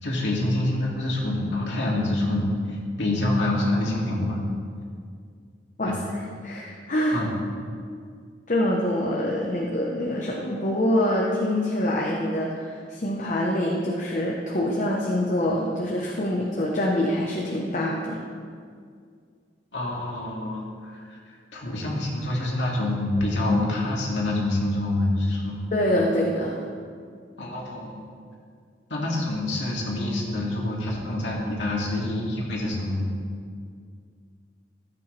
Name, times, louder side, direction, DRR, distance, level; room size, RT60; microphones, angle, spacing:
voice 1, 0.0-4.4 5.8-6.0 7.1-7.3 19.7-25.6 27.4-28.0 28.9-33.1, left 1 dB, 85° left, -3 dB, 2.3 m, -26 dB
voice 2, 6.4-7.2 8.5-18.2 25.7-26.6, left 1 dB, 45° left, -2 dB, 0.9 m, -25 dB
14.5 x 8.4 x 3.3 m, 2.1 s
head